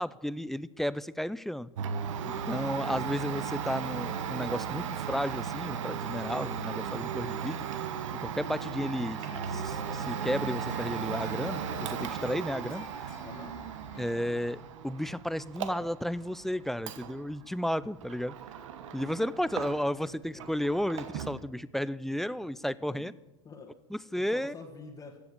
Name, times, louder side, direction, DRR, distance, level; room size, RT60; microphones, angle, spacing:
voice 1, 0.0-1.7 2.2-7.9 8.1-9.2 9.5-13.1 14.0-18.4 18.9-23.1 23.9-24.5, equal, ahead, 17 dB, 0.4 m, -33 dB
Domestic sounds home sounds, 1.8-20.1 20.4-21.4, right 7 dB, 70° right, 1.2 m, -36 dB
sound 1, 8.7-14.5, left 5 dB, 60° left, 2.9 m, -49 dB
voice 2, 13.2-13.6 19.8-20.5 22.9-23.2 23.4-23.7 24.1-25.2, left 4 dB, 20° left, -2 dB, 1.8 m, -48 dB
15.5 x 7.0 x 8.5 m, 1.1 s
hypercardioid pair, 100°, 16 cm